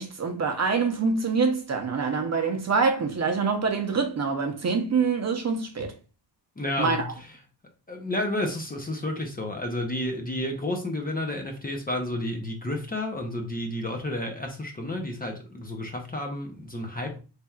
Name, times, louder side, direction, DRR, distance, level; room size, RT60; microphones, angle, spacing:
voice 1, 0.0-5.9 6.8-7.1, right 5 dB, 40° right, 0.6 m, -25 dB
voice 2, 6.6-7.0 7.9-17.2, left 1 dB, 20° left, 0.6 m, -31 dB
4.2 x 3.3 x 2.3 m
wide cardioid pair, 160°, 42 cm